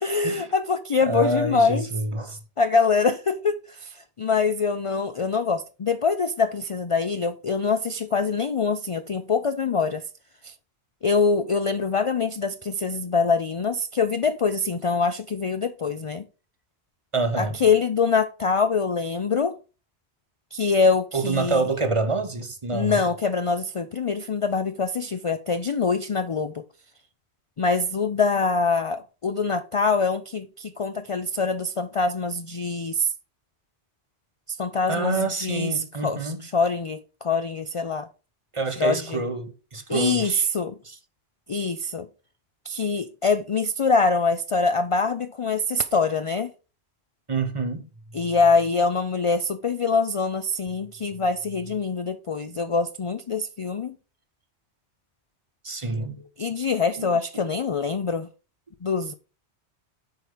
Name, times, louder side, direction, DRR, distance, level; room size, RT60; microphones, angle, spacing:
voice 1, 0.0-1.8 2.6-10.0 10.4-10.5 11.0-16.3 17.4-19.6 20.5-21.7 22.7-26.6 27.6-33.1 34.5-38.1 38.8-39.2 39.9-40.8 41.5-42.1 42.6-46.5 48.1-54.0 56.4-58.3 58.8-59.1, left 4 dB, 50° left, 0.4 m, -24 dB
voice 2, 1.0-2.4 17.1-17.6 21.1-23.0 34.9-36.5 38.5-40.5 40.8-41.0 47.3-47.9 55.6-56.2 57.0-57.5, right 3 dB, 30° right, 0.9 m, -27 dB
8.1 x 4.7 x 5.0 m
omnidirectional pair, 1.1 m